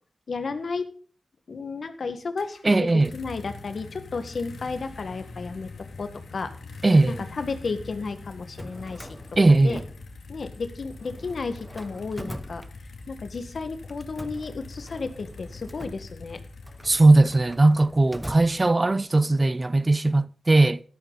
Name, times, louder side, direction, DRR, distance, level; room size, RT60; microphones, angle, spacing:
voice 1, 0.3-0.9 1.5-6.5 7.3-9.2 9.6-9.8 10.3-12.6 13.1-16.4, left 4 dB, 65° left, 1.6 m, -33 dB
sound 1, 2.4-18.3, left 3 dB, 85° left, 2.2 m, -43 dB
voice 2, 2.6-3.1 6.8-7.2 9.4-9.8 16.8-20.8, right 2 dB, 35° right, 0.5 m, -19 dB
Drawer open or close, 8.4-10.6 10.9-13.3 13.9-19.2, equal, 5° right, 0.9 m, -43 dB
13.0 x 13.0 x 4.0 m
cardioid pair, 55°, 0 cm